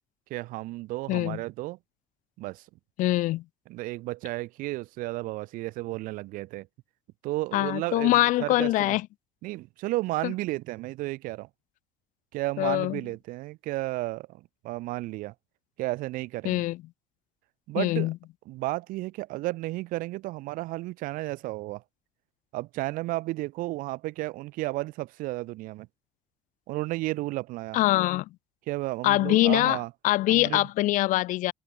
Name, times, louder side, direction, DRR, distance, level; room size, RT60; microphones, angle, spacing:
voice 1, 0.3-1.8 2.4-2.7 3.7-6.7 7.2-9.0 9.4-11.5 12.3-15.3 15.8-16.6 17.7-18.1 18.5-21.8 22.5-25.9 26.7-27.8 28.7-29.9 30.3-30.7, right 19 dB, 75° right, 5.5 m, -33 dB
voice 2, 1.1-1.4 3.0-3.4 7.5-9.0 10.2-10.3 12.6-13.0 16.4-16.8 17.8-18.1 27.7-28.3 29.0-29.8 30.0-31.5, left 17 dB, 65° left, 1.9 m, -23 dB
cardioid pair, 160°, 14 cm